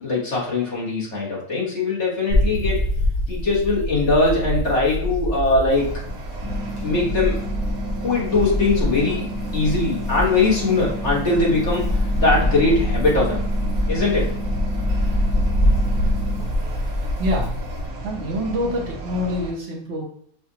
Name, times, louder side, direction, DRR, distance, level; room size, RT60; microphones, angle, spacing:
voice 1, 0.0-2.8 3.3-5.9 6.8-7.4 8.0-9.3 9.5-13.4 13.9-14.3, left 3 dB, 55° left, -5 dB, 1.6 m, -21 dB
sound 1, 2.3-17.9, left 1 dB, 80° left, 1.7 m, -24 dB
sound 2, 5.8-19.5, right 2 dB, 80° right, 1.3 m, -34 dB
sound 3, 6.4-16.4, right 1 dB, 25° right, 0.8 m, -33 dB
voice 2, 17.2-17.6 18.0-20.0, equal, 60° right, -2 dB, 1.1 m, -26 dB
5.6 x 2.5 x 2.8 m, 0.62 s
omnidirectional pair, 1.5 m